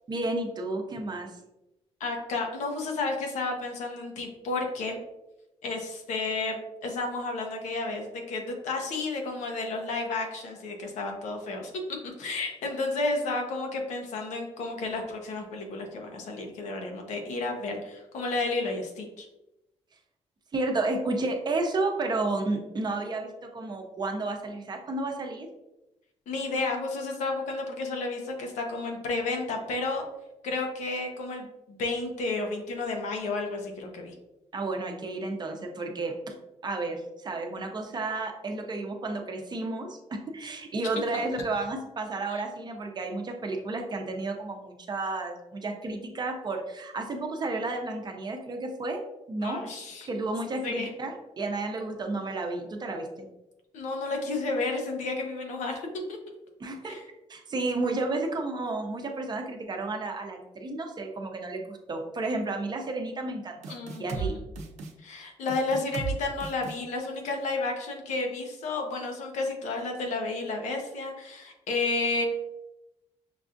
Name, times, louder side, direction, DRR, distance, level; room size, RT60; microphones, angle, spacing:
voice 1, 0.1-1.3 20.5-25.5 34.5-36.3 36.6-49.0 49.3-49.7 50.1-53.3 56.6-57.0 57.3-63.7 64.0-64.4, right 2 dB, 35° right, 3 dB, 0.7 m, -32 dB
voice 2, 2.0-5.0 5.6-11.7 12.2-19.3 26.3-30.0 30.4-34.1 42.3-42.4 49.4-50.1 50.6-50.9 53.7-56.2 56.8-57.0 63.7-64.4 65.0-72.2, left 3 dB, 90° left, 2 dB, 0.8 m, -32 dB
sound 1, 63.6-64.3 64.6-64.9 65.5-66.1 66.4-66.8, right 5 dB, 75° right, 0.6 m, -34 dB
5.9 x 2.4 x 2.5 m, 0.96 s
cardioid pair, 110°, 12 cm